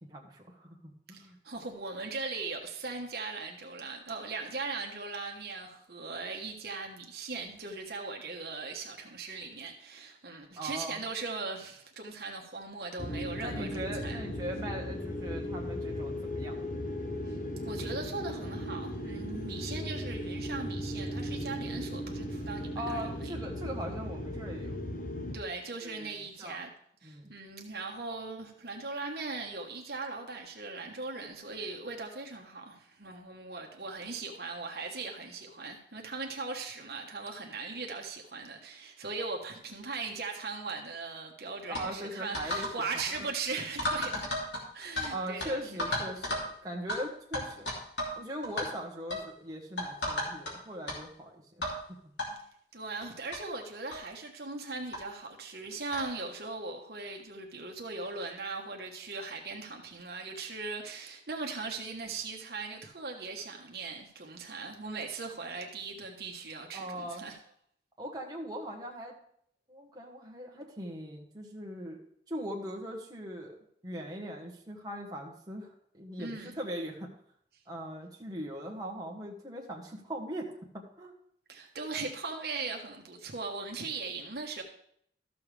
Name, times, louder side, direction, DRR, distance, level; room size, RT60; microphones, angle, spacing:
voice 1, 0.0-1.4 10.6-11.0 13.4-16.6 22.7-24.8 25.8-26.6 27.0-27.3 41.7-42.7 45.1-47.7 48.2-51.4 52.3-52.4 66.7-67.3 68.0-69.2 69.7-72.0 72.3-73.6 73.8-77.1 77.7-81.1, equal, 20° right, -1 dB, 1.3 m, -40 dB
voice 2, 1.1-14.2 17.3-17.4 17.6-23.3 25.3-26.7 27.0-44.3 44.7-45.6 52.7-67.4 76.2-76.6 81.5-84.6, right 3 dB, 60° right, 2 dB, 1.2 m, -39 dB
sound 1, 13.0-25.4, equal, 45° left, 1.0 m, -37 dB
sound 2, 41.7-41.9 42.3-42.7 43.0-43.2 43.8-45.1 45.4-45.5 45.8-46.5 46.9-47.0 47.3-48.2 48.4-48.7 49.1-49.3 49.8-50.5 50.9-51.0 51.6-51.8 52.2-52.3 53.0-53.1 53.3-53.4 53.9-54.1 54.9-55.0 55.9-56.1, left 1 dB, 90° left, 2.9 m, -33 dB
13.5 x 6.9 x 3.4 m, 0.67 s
head